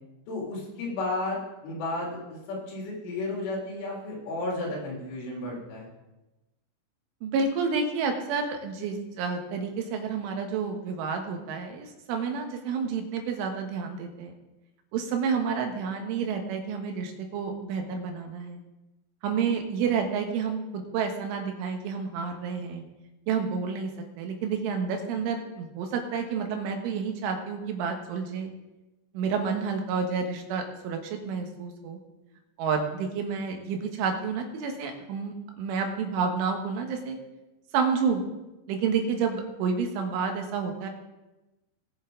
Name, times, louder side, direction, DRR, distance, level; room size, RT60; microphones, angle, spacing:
voice 1, 0.3-5.9, left 2 dB, 85° left, -3 dB, 5.4 m, -33 dB
voice 2, 7.2-14.3 14.9-18.6 19.2-22.8 23.3-23.9 24.2-28.5 29.1-32.0 32.6-37.2 37.7-38.3 38.7-40.9, right 5 dB, 90° right, 4 dB, 3.8 m, -29 dB
19.0 x 7.1 x 3.9 m, 1.0 s
omnidirectional pair, 5.4 m